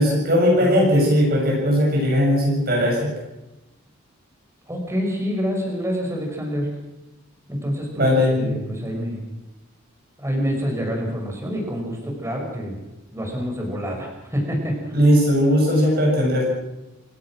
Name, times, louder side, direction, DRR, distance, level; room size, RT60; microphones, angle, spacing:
voice 1, 0.0-3.1 7.9-8.6 14.9-16.5, equal, 50° right, -2 dB, 6.6 m, -18 dB
voice 2, 0.6-1.1 4.7-6.7 7.5-8.1 8.4-9.2 10.2-12.8 13.1-15.0, equal, 15° right, 1 dB, 6.1 m, -27 dB
28.0 x 17.0 x 6.2 m, 1.0 s
head